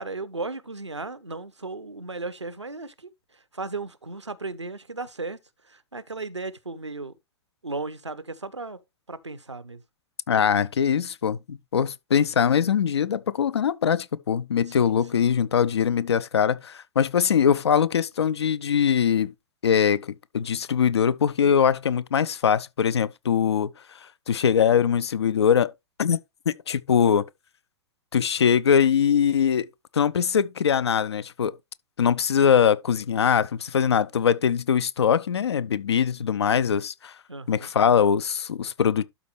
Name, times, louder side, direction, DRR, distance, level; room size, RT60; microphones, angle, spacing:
voice 1, 0.0-5.4 5.6-7.2 7.6-8.8 9.1-9.8 14.7-15.3 37.3-37.7, right 3 dB, 90° right, 0.8 m, -36 dB
voice 2, 10.3-19.3 19.6-23.7 24.3-25.7 26.0-26.2 26.5-27.2 28.1-29.7 29.9-31.5 32.0-37.1 37.5-39.0, left 7 dB, 70° left, 0.6 m, -22 dB
12.0 x 4.2 x 3.2 m
figure-of-eight pair, 105°, 14 cm